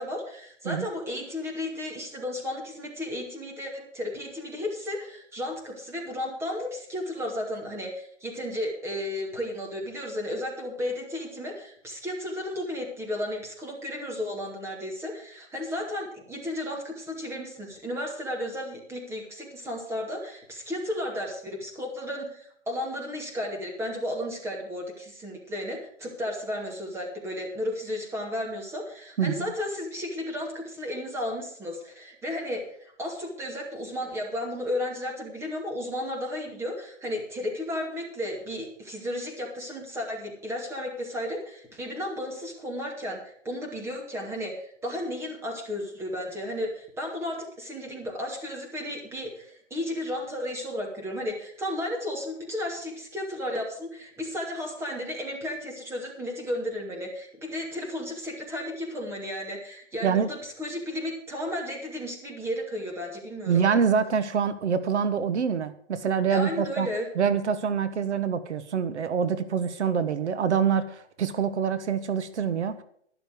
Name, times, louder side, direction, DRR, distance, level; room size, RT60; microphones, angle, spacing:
voice 1, 0.0-63.7 66.3-67.1, left 1 dB, 5° right, 0 dB, 2.3 m, -33 dB
voice 2, 63.5-66.9 67.2-72.8, right 7 dB, 70° right, 13 dB, 1.2 m, -25 dB
12.0 x 11.5 x 4.7 m, 0.64 s
hypercardioid pair, 155°, 36 cm